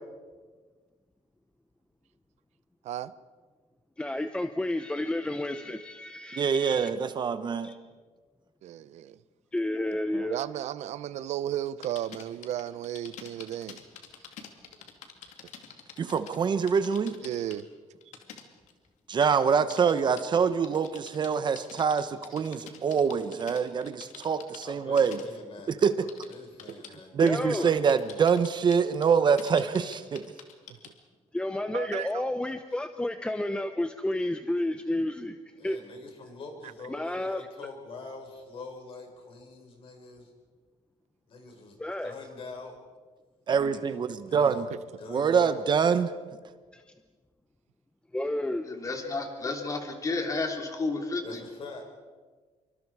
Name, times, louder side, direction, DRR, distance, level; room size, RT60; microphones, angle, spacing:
voice 1, 4.0-6.9 7.6-7.8 9.5-10.4 27.2-27.7 31.3-35.4 35.6-35.8 36.9-37.5 41.8-42.1 46.7-46.9 48.1-48.7, left 1 dB, 10° left, 0.8 m, -31 dB
voice 2, 6.3-7.7 10.1-10.3 16.0-17.1 19.1-25.2 25.8-25.9 27.1-30.2 43.5-44.7 45.1-46.1, right 6 dB, 40° right, 0.9 m, -25 dB
voice 3, 8.6-9.2 10.3-13.8 17.2-17.7 31.7-32.3 44.4-44.5, right 12 dB, 70° right, 0.7 m, -34 dB
sound 1, 11.8-16.4 16.7-17.6 18.0-18.9 19.3-24.6 25.0-25.2 26.1-27.0 27.3-27.6 27.9-31.0, left 8 dB, 75° left, 2.5 m, -47 dB
voice 4, 24.6-25.7 26.0-27.7 35.6-40.3 41.3-42.8 43.9-44.0 44.2-44.7 45.0-45.6 51.2-51.9, left 3 dB, 50° left, 5.4 m, -44 dB
voice 5, 48.6-51.4, left 3 dB, 25° left, 3.3 m, -31 dB
27.0 x 24.0 x 4.8 m
cardioid pair, 135°, 12 cm